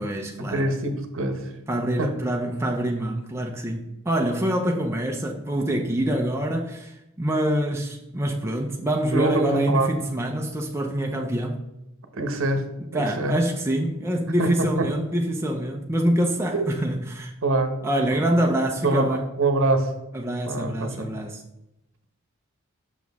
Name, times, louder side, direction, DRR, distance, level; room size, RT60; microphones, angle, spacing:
voice 1, 0.0-0.7 1.7-11.6 12.9-17.3 17.8-19.2 20.1-21.4, right 1 dB, 10° right, 0.5 m, -25 dB
voice 2, 0.5-1.5 2.0-2.1 9.1-9.9 12.1-13.4 14.4-14.9 16.5-16.6 17.4-17.7 18.8-19.0 19.4-19.9 20.5-21.1, right 2 dB, 65° right, 0.9 m, -24 dB
6.2 x 6.2 x 3.5 m
head